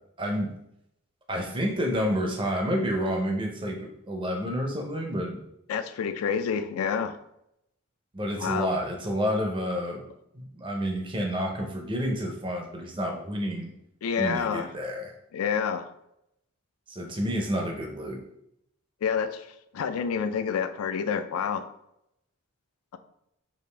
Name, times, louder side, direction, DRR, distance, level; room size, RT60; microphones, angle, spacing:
voice 1, 0.2-0.5 1.3-5.4 8.1-10.1 10.3-13.7 14.2-15.1 16.9-18.2, equal, 20° right, 2 dB, 0.5 m, -29 dB
voice 2, 5.7-7.1 8.4-8.7 14.0-14.7 15.3-15.9 19.0-19.5 19.7-21.6, left 6 dB, 75° left, 10 dB, 0.3 m, -28 dB
5.0 x 2.5 x 3.3 m, 0.78 s
head